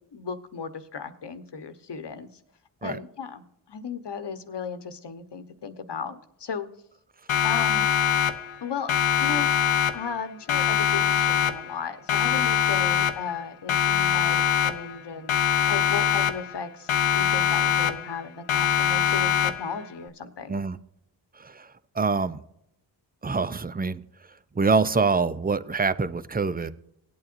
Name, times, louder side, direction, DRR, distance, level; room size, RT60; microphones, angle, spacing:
voice 1, 0.1-2.3 2.8-6.7 7.4-7.9 8.6-8.9 9.2-15.3 15.7-20.6, left 6 dB, 60° left, 9 dB, 1.2 m, -35 dB
Siren, 7.3-8.6 8.9-10.2 10.5-11.8 12.1-13.4 13.7-15.0 15.3-16.6 16.9-18.2 18.5-19.8, left 9 dB, 80° left, 0.9 m, -23 dB
voice 2, 22.0-22.4 23.2-24.0 24.6-26.7, right 4 dB, 20° right, 14 dB, 0.6 m, -25 dB
18.0 x 8.6 x 2.6 m, 0.76 s
cardioid pair, 45°, 48 cm